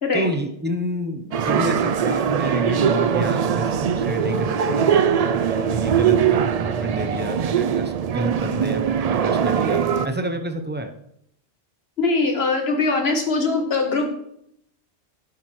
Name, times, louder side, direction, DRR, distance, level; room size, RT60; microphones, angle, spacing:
voice 1, 0.1-10.9, equal, 10° right, 7 dB, 0.6 m, -29 dB
sound 1, 1.3-10.1, right 7 dB, 75° right, 0.3 m, -21 dB
voice 2, 12.0-14.1, left 3 dB, 60° left, 3 dB, 1.7 m, -21 dB
11.5 x 7.6 x 3.1 m, 0.73 s
omnidirectional pair, 1.2 m